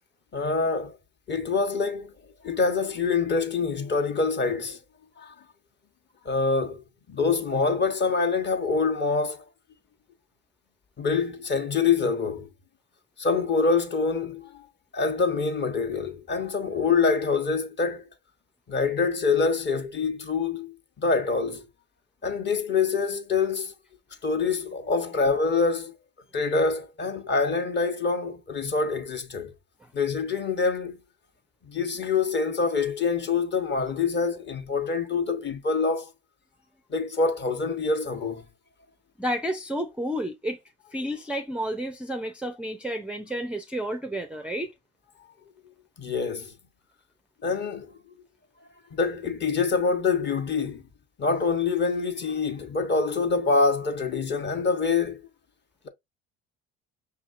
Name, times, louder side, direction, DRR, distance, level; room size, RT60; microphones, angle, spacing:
voice 1, 0.3-1.0 1.3-2.1 2.4-4.8 5.2-5.3 6.2-9.4 11.0-12.5 13.2-14.6 14.9-18.1 18.7-21.6 22.2-23.7 24.2-25.9 26.3-29.5 29.9-31.0 31.6-36.1 36.9-38.5 46.0-46.5 47.4-48.0 48.9-50.9 51.2-55.2, left 4 dB, 35° left, 1.0 m, -25 dB
voice 2, 39.2-40.6 40.9-44.7, equal, 5° right, 0.4 m, -31 dB
5.6 x 2.8 x 2.5 m
hypercardioid pair, 75°, 32 cm